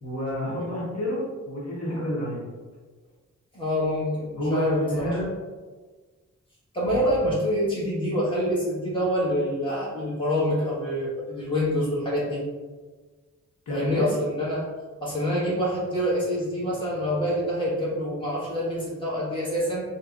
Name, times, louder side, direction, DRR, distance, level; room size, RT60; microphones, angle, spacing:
voice 1, 0.0-2.4 4.4-5.3 13.7-14.1, equal, 65° left, -6 dB, 1.0 m, -28 dB
voice 2, 3.5-5.2 6.7-12.4 13.7-14.6 15.0-19.8, equal, 15° left, -8 dB, 1.3 m, -26 dB
3.6 x 2.8 x 2.4 m, 1.4 s
wide cardioid pair, 95°, 29 cm